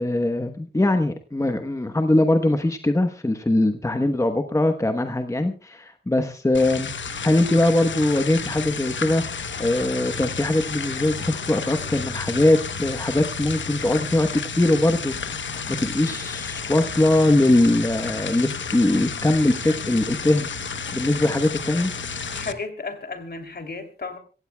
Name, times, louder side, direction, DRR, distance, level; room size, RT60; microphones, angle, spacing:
voice 1, 0.0-6.9 7.2-15.1 15.7-20.5 20.9-21.9, left 1 dB, 15° left, 7 dB, 1.0 m, -21 dB
sound 1, 6.5-22.5, left 5 dB, 90° left, 1.0 m, -32 dB
voice 2, 22.3-24.2, left 4 dB, 60° left, 6 dB, 2.9 m, -33 dB
26.0 x 16.0 x 2.3 m, 0.35 s
wide cardioid pair, 115°, 19 cm